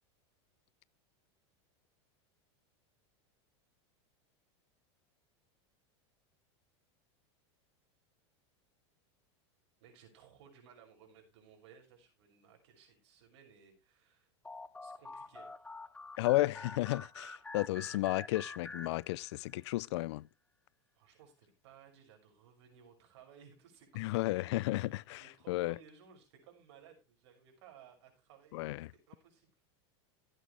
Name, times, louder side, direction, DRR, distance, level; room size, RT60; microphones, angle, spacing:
voice 1, 9.8-14.3 14.8-15.7 17.7-18.2 20.9-23.9 24.3-29.5, right 7 dB, 70° right, 6.1 m, -60 dB
sound 1, 14.4-19.6, left 3 dB, 5° left, 0.6 m, -47 dB
voice 2, 16.2-20.2 24.0-25.8 28.5-28.9, left 18 dB, 70° left, 0.5 m, -33 dB
15.5 x 9.0 x 3.3 m
supercardioid pair, 130°, 15 cm